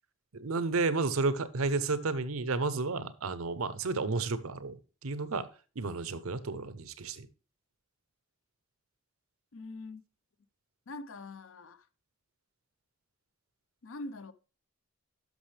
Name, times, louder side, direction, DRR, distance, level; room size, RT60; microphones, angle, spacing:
voice 1, 0.3-5.5 5.8-7.3, right 3 dB, 80° right, 0.7 m, -32 dB
voice 2, 9.5-10.0 10.9-11.8 13.8-14.3, left 2 dB, 70° left, 0.6 m, -43 dB
11.5 x 6.2 x 3.3 m
head